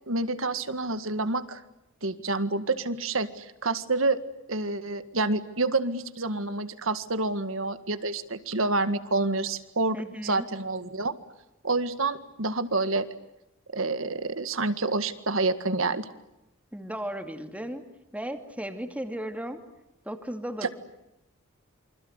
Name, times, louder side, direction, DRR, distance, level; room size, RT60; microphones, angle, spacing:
voice 1, 0.1-1.6 2.0-4.2 4.5-10.0 10.2-11.1 11.6-13.1 13.7-16.1 20.6-20.7, right 3 dB, 70° right, 11 dB, 1.9 m, -28 dB
voice 2, 9.9-10.5 16.7-17.8 18.1-19.6 20.0-20.7, equal, 5° right, 6 dB, 2.6 m, -35 dB
28.0 x 25.5 x 8.2 m, 0.91 s
head